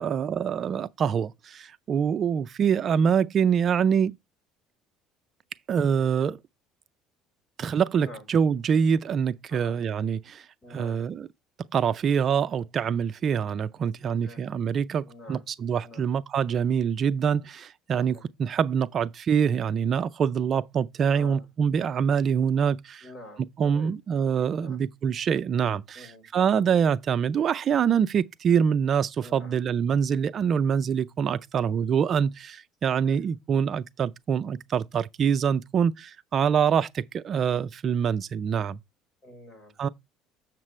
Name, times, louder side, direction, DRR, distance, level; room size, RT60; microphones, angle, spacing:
voice 1, 0.0-4.1 5.7-6.4 7.6-11.3 11.7-23.1 23.6-38.8 39.8-39.9, right 7 dB, 40° right, 0.4 m, -25 dB
voice 2, 10.6-11.0 14.1-14.4 15.0-15.4 15.8-16.0 17.9-18.2 21.1-21.5 23.0-23.9 24.5-24.8 25.9-26.2 29.2-29.6 32.9-33.2 39.2-39.7, left 1 dB, 20° left, 4.3 m, -46 dB
7.5 x 7.3 x 3.2 m
cardioid pair, 130°, 0 cm